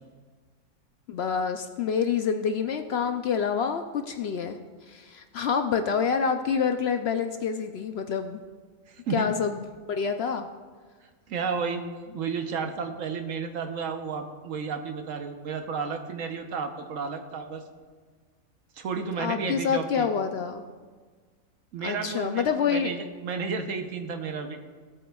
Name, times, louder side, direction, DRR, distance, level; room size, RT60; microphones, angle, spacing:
voice 1, 1.1-8.4 9.1-9.6 9.9-10.5 19.1-20.6 21.8-22.9, left 6 dB, 65° left, 7 dB, 0.7 m, -27 dB
voice 2, 8.9-9.2 11.3-11.8 12.1-17.6 18.7-20.1 21.7-24.6, right 5 dB, 75° right, 6 dB, 1.2 m, -32 dB
17.0 x 8.3 x 2.3 m, 1.5 s
omnidirectional pair, 1.4 m